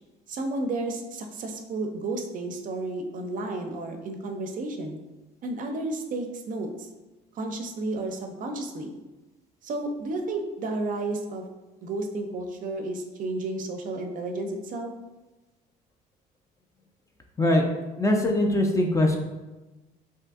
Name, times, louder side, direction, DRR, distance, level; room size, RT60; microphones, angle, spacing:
voice 1, 0.3-5.0 5.4-6.9 7.4-9.0 9.6-11.4 11.8-14.9, right 2 dB, 50° right, 4 dB, 0.5 m, -32 dB
voice 2, 18.0-19.2, left 1 dB, 20° left, 1 dB, 0.4 m, -22 dB
2.7 x 2.5 x 3.5 m, 1.1 s
cardioid pair, 110°, 17 cm